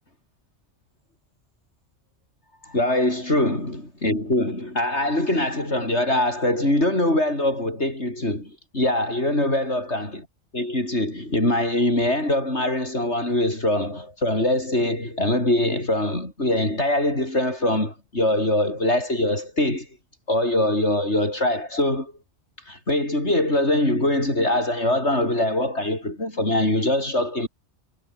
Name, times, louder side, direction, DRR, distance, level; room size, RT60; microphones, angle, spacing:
voice 1, 2.6-10.3 10.5-19.9 20.3-22.1 22.7-27.5, left 1 dB, 75° left, 8.2 m, -23 dB
omnidirectional pair, 1.2 m